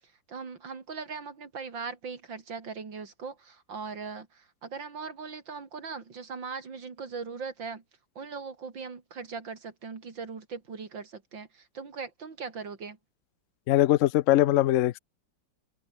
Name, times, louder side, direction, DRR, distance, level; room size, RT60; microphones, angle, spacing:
voice 1, 0.3-7.8 8.2-13.0, right 5 dB, 85° right, 3.7 m, -39 dB
voice 2, 13.7-15.0, left 14 dB, 70° left, 0.7 m, -21 dB
omnidirectional pair, 2.0 m